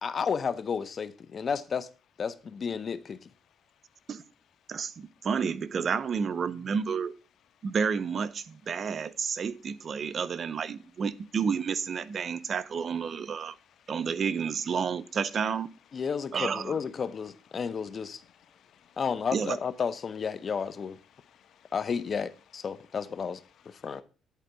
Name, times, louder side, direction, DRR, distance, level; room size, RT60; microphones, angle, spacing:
voice 1, 0.0-1.9 2.2-3.3 15.9-18.2 19.0-21.0 21.7-23.4 23.7-24.0, left 6 dB, 45° left, 0.9 m, -32 dB
voice 2, 4.7-7.1 7.6-13.5 13.9-15.7 16.3-16.7 19.3-19.6, right 6 dB, 50° right, 0.6 m, -30 dB
voice 3, 13.5-13.9 18.2-19.0 21.1-21.7 23.8-24.0, left 9 dB, 70° left, 1.1 m, -62 dB
10.5 x 4.4 x 6.8 m
cardioid pair, 90°, 0 cm